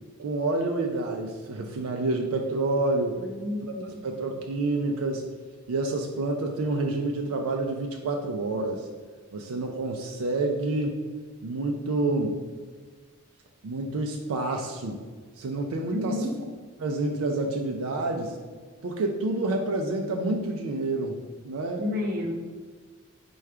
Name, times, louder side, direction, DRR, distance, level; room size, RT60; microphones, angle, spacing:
voice 1, 0.2-3.2 4.0-5.2 5.7-8.9 9.3-11.0 11.4-12.4 13.6-15.0 15.4-16.2 16.8-18.4 18.8-21.2 21.4-21.8, right 2 dB, 75° right, 2 dB, 0.4 m, -28 dB
voice 2, 3.1-4.1 15.9-16.4 21.8-22.3, left 1 dB, 45° right, 0 dB, 0.7 m, -31 dB
4.3 x 2.3 x 4.8 m, 1.5 s
head